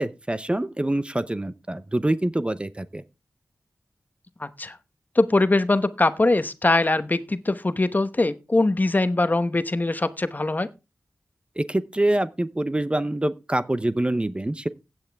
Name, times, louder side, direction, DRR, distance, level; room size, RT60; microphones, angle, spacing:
voice 1, 0.0-3.0 11.6-14.7, right 1 dB, 20° right, 0.7 m, -25 dB
voice 2, 4.4-4.8 5.1-10.7, left 2 dB, 35° left, 1.0 m, -22 dB
16.0 x 9.0 x 3.5 m
wide cardioid pair, 70°, 5 cm